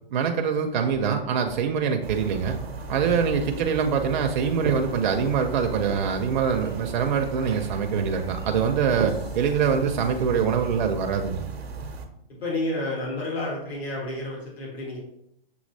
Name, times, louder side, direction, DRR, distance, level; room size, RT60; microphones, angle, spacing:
voice 1, 0.1-2.6 2.9-11.5, right 7 dB, 50° right, 4 dB, 0.5 m, -24 dB
sound 1, 0.7-10.3, left 1 dB, 40° left, 0.8 m, -45 dB
sound 2, 2.0-12.1, right 4 dB, 85° right, 0.7 m, -35 dB
voice 2, 3.0-3.4 12.3-15.0, left 1 dB, 80° left, -3 dB, 1.6 m, -31 dB
6.3 x 2.8 x 2.6 m, 0.77 s
hypercardioid pair, 135°, 30 cm